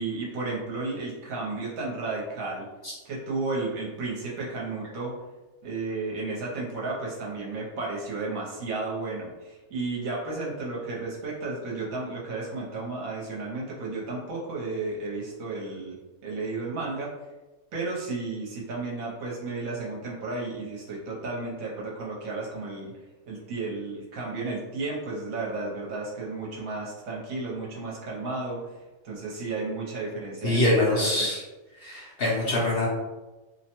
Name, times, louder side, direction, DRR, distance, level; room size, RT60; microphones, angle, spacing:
voice 1, 0.0-2.7 3.0-5.1 5.6-16.0 16.2-17.1 17.7-22.9 23.3-28.6 29.0-31.3, right 3 dB, 65° right, -4 dB, 1.0 m, -33 dB
voice 2, 30.4-31.4 31.8-32.9, left 1 dB, 55° left, -6 dB, 0.7 m, -24 dB
2.7 x 2.1 x 2.8 m, 1.1 s
omnidirectional pair, 1.6 m